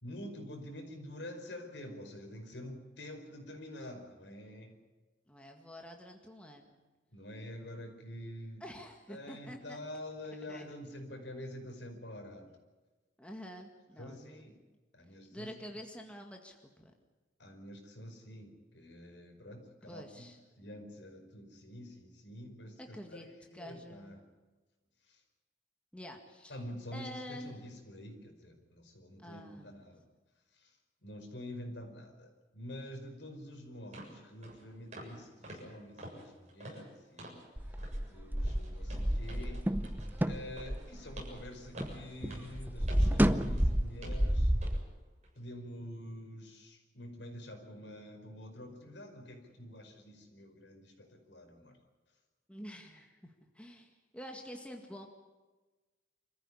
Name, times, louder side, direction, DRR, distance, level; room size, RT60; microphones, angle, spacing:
voice 1, 0.0-4.8 7.1-8.6 9.1-12.5 14.0-14.6 14.9-15.5 17.4-20.3 20.6-24.2 25.1-25.2 26.5-30.0 30.5-30.8 31.0-37.4 37.6-39.7 40.2-44.5 45.4-51.8, left 1 dB, 70° left, 4 dB, 5.1 m, -47 dB
voice 2, 5.3-6.7 8.6-9.8 10.5-10.7 13.2-14.5 15.1-16.9 19.8-20.4 22.8-23.3 23.5-24.2 25.9-26.6 26.9-27.6 29.2-29.9 52.5-55.1, equal, 5° left, 3 dB, 1.9 m, -48 dB
sound 1, 33.3-33.4 33.9-34.2 34.4-34.6 34.9-35.2 35.4-37.5 37.8-38.0 38.4-43.7 44.0-44.2 44.6-44.8 45.2-45.4, right 1 dB, 40° right, 7.3 m, -49 dB
sound 2, 37.6-42.0 42.2-44.8, equal, 10° right, 0.8 m, -30 dB
26.5 x 15.0 x 9.9 m, 1.2 s
head